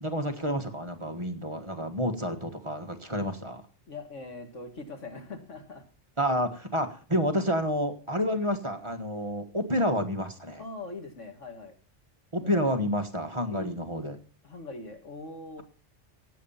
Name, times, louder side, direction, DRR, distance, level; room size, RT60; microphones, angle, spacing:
voice 1, 0.0-3.6 6.2-10.6 12.3-14.2, equal, 25° right, 5 dB, 1.5 m, -29 dB
voice 2, 3.9-5.8 10.6-11.7 12.4-12.6 13.5-13.8 14.4-15.6, left 3 dB, 90° left, 5 dB, 2.4 m, -41 dB
16.0 x 8.9 x 5.7 m, 0.40 s
omnidirectional pair, 1.2 m